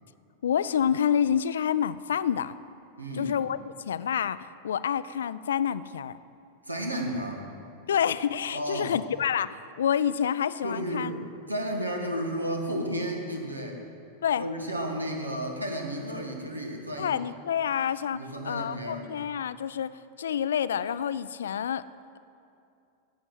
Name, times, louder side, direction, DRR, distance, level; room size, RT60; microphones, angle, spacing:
voice 1, 0.4-2.6 3.1-6.2 7.9-11.1 14.2-14.5 17.0-21.8, left 8 dB, 65° left, 16 dB, 0.3 m, -28 dB
voice 2, 3.0-3.3 6.6-7.5 8.5-9.0 10.6-13.8 14.4-17.1 18.1-19.1, equal, 85° right, 2 dB, 1.5 m, -32 dB
11.5 x 8.0 x 7.8 m, 2.6 s
figure-of-eight pair, 90°, 0 cm